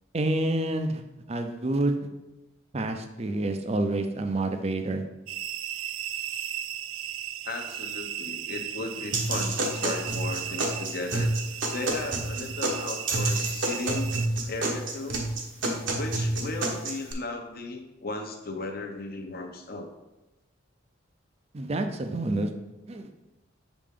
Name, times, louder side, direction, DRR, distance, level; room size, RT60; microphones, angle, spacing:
voice 1, 0.1-1.0 1.3-2.0 2.7-5.0 21.5-22.5 22.9-23.1, right 2 dB, 35° right, 7 dB, 0.5 m, -28 dB
sound 1, 5.3-14.3, right 10 dB, 90° right, 0.3 m, -36 dB
voice 2, 7.4-11.3 11.7-14.1 14.5-15.2 16.0-19.9, left 2 dB, 50° left, 4 dB, 0.9 m, -36 dB
sound 2, 9.1-17.1, right 2 dB, 70° right, 1.1 m, -29 dB
6.7 x 5.1 x 3.7 m, 0.98 s
head